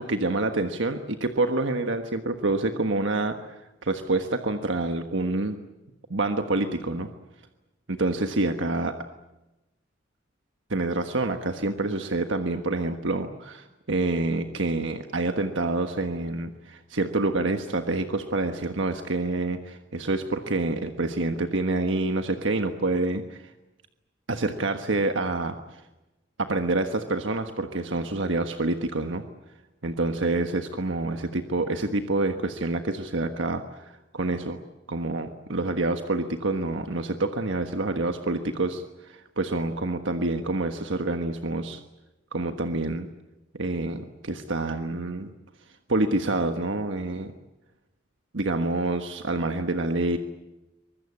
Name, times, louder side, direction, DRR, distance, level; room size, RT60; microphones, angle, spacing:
voice 1, 0.0-5.6 6.1-7.1 7.9-8.9 10.7-23.4 24.3-25.6 26.4-29.2 29.8-34.6 34.9-41.8 42.3-43.1 43.5-45.3 45.9-47.3 48.3-50.2, right 2 dB, 75° right, 6 dB, 1.4 m, -27 dB
24.5 x 21.0 x 8.6 m, 1.0 s
head